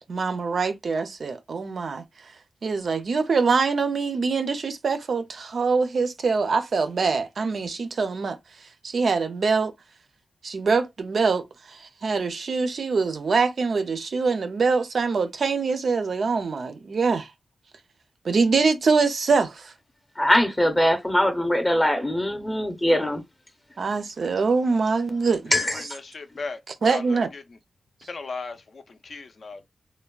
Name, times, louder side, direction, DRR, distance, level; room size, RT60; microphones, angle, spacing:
voice 1, 0.0-2.0 2.6-8.4 8.8-9.7 10.4-17.3 18.2-19.7 23.8-25.5 26.8-27.3, right 4 dB, 60° right, 0.4 m, -24 dB
voice 2, 20.2-23.2 25.5-25.9, equal, 15° left, 0.6 m, -22 dB
voice 3, 25.5-26.6 26.9-27.4 28.1-29.7, left 4 dB, 55° left, 0.4 m, -37 dB
3.3 x 2.1 x 2.3 m
wide cardioid pair, 145°, 0 cm